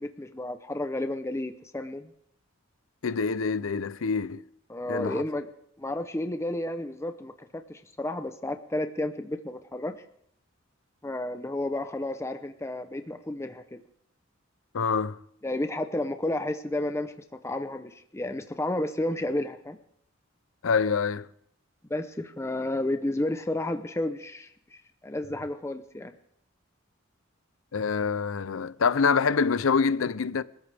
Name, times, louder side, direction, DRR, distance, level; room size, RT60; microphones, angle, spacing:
voice 1, 0.0-2.1 4.7-5.5 5.8-10.0 11.0-13.8 15.4-17.1 17.4-19.8 21.9-26.1, left 1 dB, 15° left, 0.7 m, -32 dB
voice 2, 3.0-4.4 4.9-5.2 14.7-15.2 20.6-21.3 27.7-30.4, left 5 dB, 80° left, 0.6 m, -26 dB
27.0 x 14.0 x 3.4 m
head